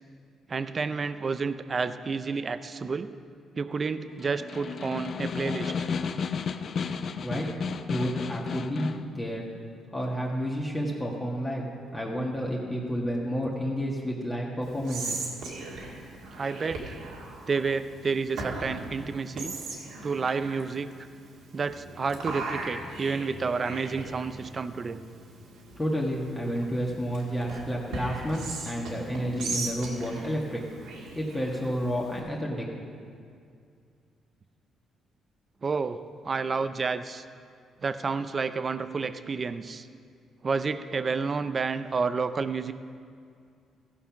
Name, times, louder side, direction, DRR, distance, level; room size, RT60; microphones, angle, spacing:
voice 1, 0.5-3.1 3.5-5.9 16.4-17.0 17.5-19.6 20.0-20.9 21.5-25.0 27.8-27.9 35.6-36.0 36.2-37.2 37.8-39.9 40.4-42.7, right 4 dB, 40° right, 12 dB, 0.5 m, -30 dB
Snare drum, 4.1-9.1, left 6 dB, 55° left, 0.5 m, -33 dB
voice 2, 7.9-9.4 9.9-11.7 11.9-15.2 25.8-30.6 31.1-32.7, equal, 15° left, -3 dB, 1.5 m, -30 dB
Whispering, 14.6-32.2, right 3 dB, 90° right, 1.8 m, -39 dB
15.5 x 5.6 x 5.8 m, 2.3 s
cardioid pair, 90°, 0 cm